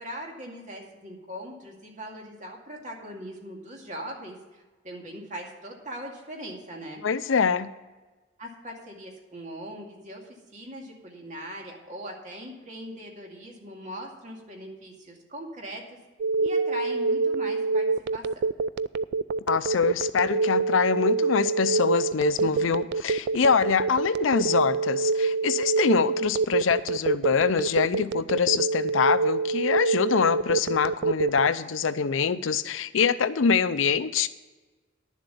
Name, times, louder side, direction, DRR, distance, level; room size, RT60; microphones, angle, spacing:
voice 1, 0.0-7.0 8.4-10.2 10.5-15.8 16.4-17.9 18.1-18.2 22.4-22.8, equal, 40° right, 0 dB, 2.3 m, -40 dB
voice 2, 7.0-7.7 19.5-34.3, left 6 dB, 75° left, 14 dB, 0.5 m, -24 dB
Telephone, 16.2-31.5, right 4 dB, 55° right, 0.3 m, -25 dB
11.0 x 7.4 x 6.8 m, 1.2 s
head